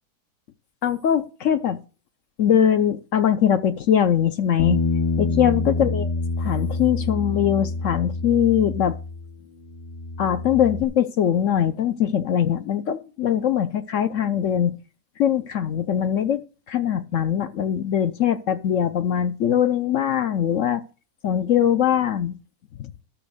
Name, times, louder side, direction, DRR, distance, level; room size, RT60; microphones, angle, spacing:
voice 1, 0.8-1.8 2.4-4.8 5.2-6.1 6.4-9.0 10.2-14.7 15.2-16.4 16.7-20.8 21.2-22.3 22.8-22.9, left 9 dB, 60° left, 0.9 m, -21 dB
Bass guitar, 4.6-9.4 9.7-10.8, left 3 dB, 90° left, 2.6 m, -27 dB
12.0 x 6.1 x 6.6 m
omnidirectional pair, 1.6 m